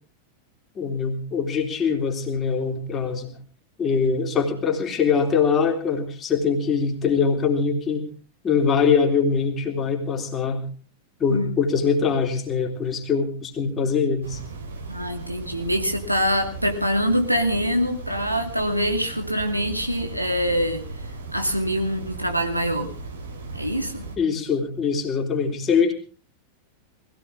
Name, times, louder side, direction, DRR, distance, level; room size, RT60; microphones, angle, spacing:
voice 1, 0.8-3.3 3.8-8.1 8.4-10.6 11.2-14.4 24.2-25.9, left 5 dB, 25° left, 2 dB, 3.5 m, -23 dB
sound 1, 14.2-24.2, right 3 dB, 70° right, 3.7 m, -37 dB
voice 2, 14.9-20.9 21.3-22.9 23.5-24.1, equal, 90° right, 4 dB, 2.3 m, -24 dB
20.5 x 16.5 x 3.5 m, 0.38 s
figure-of-eight pair, 90°, 0 cm